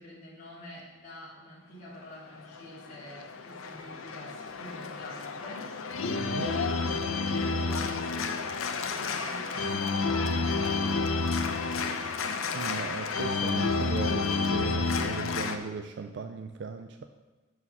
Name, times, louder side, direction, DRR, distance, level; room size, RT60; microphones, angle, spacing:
voice 1, 0.0-5.7 6.7-12.0, left 1 dB, 35° left, -7 dB, 2.1 m, -47 dB
Organ, 2.4-15.6, left 4 dB, 80° left, 0.5 m, -30 dB
voice 2, 6.0-6.5 12.5-17.1, right 5 dB, 55° right, 7 dB, 0.3 m, -37 dB
Trumpet, 8.9-13.3, equal, 15° right, 1.6 m, -50 dB
5.6 x 4.8 x 5.4 m, 1.2 s
head